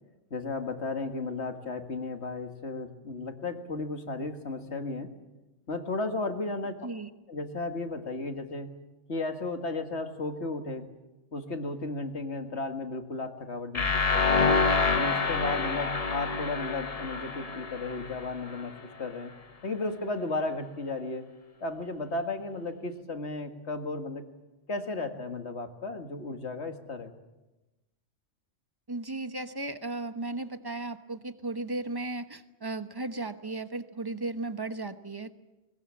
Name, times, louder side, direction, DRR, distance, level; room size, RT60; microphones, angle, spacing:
voice 1, 0.3-5.1 5.7-6.7 7.3-8.7 9.1-10.9 11.3-14.4 14.9-18.7 19.0-19.3 19.6-21.2 21.6-24.2 24.7-27.1, left 3 dB, 60° left, 6 dB, 2.1 m, -34 dB
sound 1, 13.7-18.6, left 4 dB, 35° left, 1.0 m, -27 dB
voice 2, 28.9-35.3, right 2 dB, 20° right, 10 dB, 1.0 m, -35 dB
21.0 x 20.5 x 8.6 m, 1.1 s
omnidirectional pair, 1.3 m